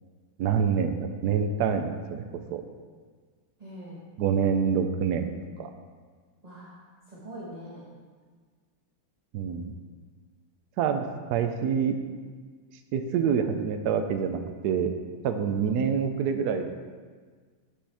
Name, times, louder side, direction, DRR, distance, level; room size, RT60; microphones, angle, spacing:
voice 1, 0.4-2.2 2.5-2.6 4.2-5.3 5.6-5.7 9.3-9.7 10.8-12.0 12.9-14.9 15.2-16.7, right 7 dB, 80° right, 7 dB, 0.9 m, -26 dB
voice 2, 3.6-4.0 6.4-7.9 15.6-15.8, right 1 dB, 25° right, -6 dB, 0.8 m, -43 dB
8.7 x 6.4 x 3.4 m, 1.5 s
omnidirectional pair, 2.3 m